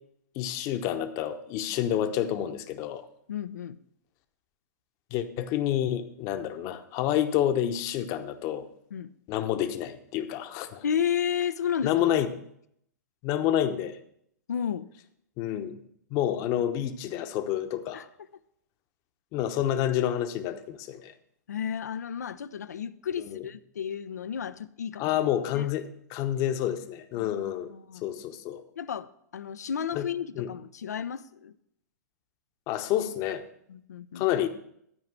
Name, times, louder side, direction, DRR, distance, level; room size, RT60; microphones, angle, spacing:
voice 1, 0.3-3.1 5.1-8.7 9.3-10.8 11.8-12.3 13.2-14.0 15.4-15.8 16.1-18.1 19.3-21.1 23.3-23.4 25.0-27.7 28.0-28.6 29.9-30.0 30.4-30.5 32.7-33.4 34.1-34.5, left 11 dB, 35° left, 9 dB, 1.0 m, -28 dB
voice 2, 3.3-3.8 8.9-9.1 10.8-11.9 14.5-14.9 17.9-18.0 21.5-25.1 25.5-25.7 27.2-28.0 28.8-29.1 29.3-31.5 33.7-34.3, left 8 dB, 70° left, 13 dB, 0.5 m, -32 dB
13.0 x 4.8 x 7.6 m, 0.70 s
figure-of-eight pair, 110°, 9 cm